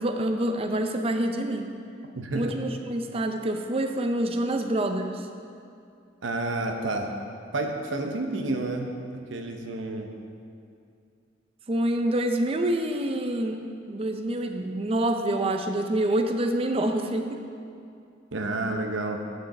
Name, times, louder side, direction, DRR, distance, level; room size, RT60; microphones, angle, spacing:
voice 1, 0.0-1.7 2.3-5.2 11.7-17.4, right 1 dB, 30° right, 5 dB, 0.5 m, -27 dB
voice 2, 2.1-2.5 6.2-7.1 7.5-8.9 9.3-10.1 18.3-19.2, right 2 dB, 90° right, 4 dB, 0.8 m, -30 dB
8.9 x 6.4 x 4.2 m, 2.4 s
head